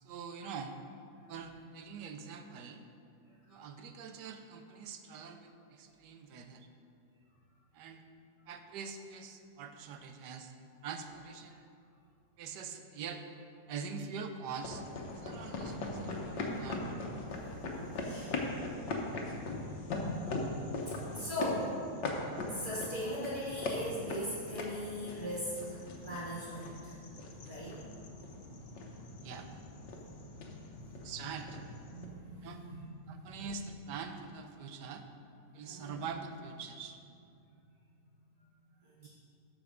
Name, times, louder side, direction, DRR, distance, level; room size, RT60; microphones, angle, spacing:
voice 1, 0.0-0.8 1.3-2.9 3.5-6.7 7.7-8.0 8.5-10.5 10.8-11.7 12.4-13.2 13.7-14.8 15.1-16.9 29.2-29.5 31.0-31.6 32.4-32.6 33.1-35.1 35.5-37.0 39.0-39.1, right 5 dB, 80° right, 7 dB, 1.3 m, -44 dB
sound 1, 14.6-32.1, left 2 dB, 85° left, 1.7 m, -40 dB
voice 2, 18.0-18.4 19.0-19.3 20.2-20.4 20.8-21.8 22.5-27.0 27.4-27.8 29.9-31.1 31.9-33.6 35.6-36.0 38.4-38.5 38.8-39.1, equal, 25° right, -10 dB, 2.6 m, -41 dB
13.0 x 4.7 x 5.0 m, 2.5 s
omnidirectional pair, 1.9 m